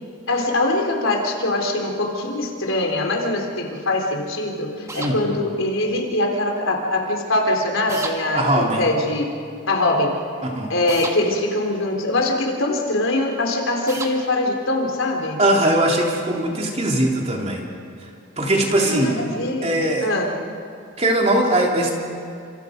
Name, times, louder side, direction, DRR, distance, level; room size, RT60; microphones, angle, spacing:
voice 1, 0.3-9.3 9.7-10.2 10.7-15.4 18.8-20.3, left 2 dB, 80° left, 1 dB, 3.9 m, -23 dB
sound 1, 4.9-5.2 7.9-8.2 10.9-11.2 13.9-14.2, right 3 dB, 15° right, 1.7 m, -31 dB
voice 2, 8.3-8.8 10.4-10.7 15.4-17.6 18.4-19.2 19.6-20.1 21.0-22.0, right 1 dB, 30° right, -1 dB, 3.3 m, -20 dB
30.0 x 26.5 x 5.3 m, 2.4 s
head